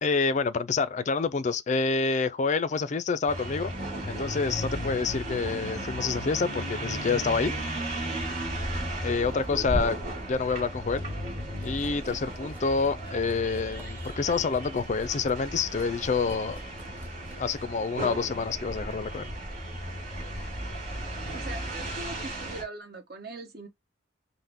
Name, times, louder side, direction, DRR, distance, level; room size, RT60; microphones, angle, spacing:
voice 1, 0.0-3.7 4.1-7.5 9.0-10.0 10.3-11.1 11.6-16.6 17.4-19.3, left 4 dB, 35° left, 0.4 m, -27 dB
sound 1, 3.3-22.6, right 1 dB, 35° right, 3.2 m, -35 dB
Liquid, 7.4-11.1 11.4-19.0, equal, 10° right, 0.8 m, -40 dB
voice 2, 21.3-23.7, right 2 dB, 50° right, 1.2 m, -41 dB
5.6 x 2.1 x 3.5 m
head